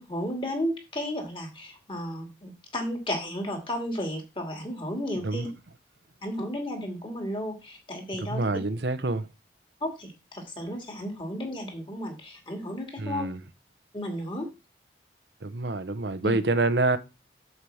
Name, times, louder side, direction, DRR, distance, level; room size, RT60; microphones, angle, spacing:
voice 1, 0.0-5.5 6.2-8.4 9.8-13.3 13.9-14.5 16.2-16.3, equal, 30° left, 2.3 m, -33 dB
voice 2, 8.3-9.3 13.0-13.4 15.4-17.0, right 2 dB, 75° right, 0.9 m, -26 dB
8.2 x 4.7 x 7.0 m
head